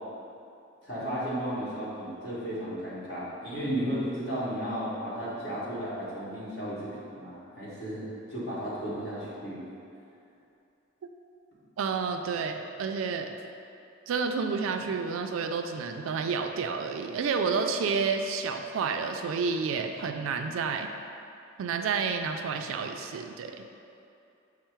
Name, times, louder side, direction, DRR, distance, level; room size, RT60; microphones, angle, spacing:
voice 1, 0.8-8.0 8.3-9.6, equal, 55° left, -9 dB, 1.3 m, -34 dB
voice 2, 11.8-13.3 14.1-20.9 21.6-23.6, right 5 dB, 80° right, 5 dB, 0.3 m, -30 dB
5.5 x 2.0 x 4.4 m, 2.6 s
head